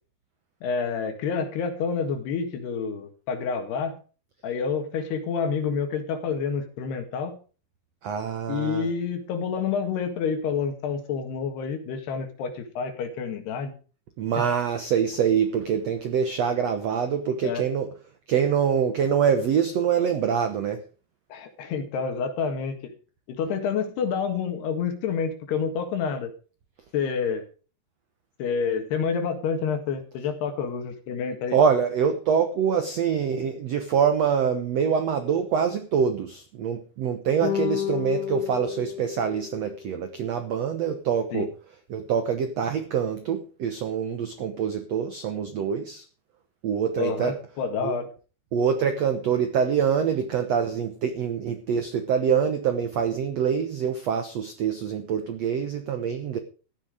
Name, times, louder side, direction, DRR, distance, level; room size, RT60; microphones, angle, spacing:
voice 1, 0.6-4.0 4.4-7.4 8.5-13.7 14.4-14.5 17.4-17.6 21.3-22.9 23.3-26.3 26.9-27.4 28.4-31.6 41.3-41.5 47.0-48.1, left 6 dB, 80° left, 3.9 m, -28 dB
voice 2, 8.0-8.9 14.2-17.9 18.3-20.8 31.5-41.5 41.9-46.0 46.6-47.3 47.8-47.9 48.5-56.4, right 7 dB, 75° right, 1.5 m, -25 dB
sound 1, 37.4-40.0, left 10 dB, 65° left, 2.4 m, -30 dB
14.5 x 10.5 x 4.9 m
omnidirectional pair, 4.6 m